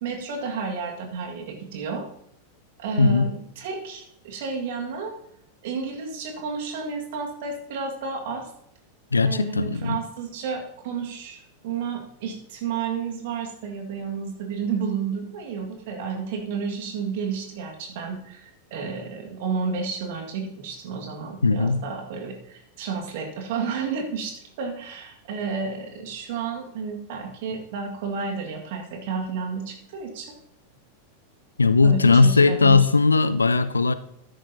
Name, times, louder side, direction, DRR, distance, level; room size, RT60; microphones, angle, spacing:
voice 1, 0.0-2.1 2.8-5.1 5.6-8.5 9.2-30.4 31.8-32.9, right 5 dB, 50° right, 3 dB, 1.9 m, -31 dB
voice 2, 3.0-3.3 9.1-10.0 21.4-21.8 31.6-33.9, left 4 dB, 80° left, 15 dB, 0.5 m, -18 dB
13.0 x 10.5 x 2.8 m, 0.75 s
figure-of-eight pair, 90°, 0 cm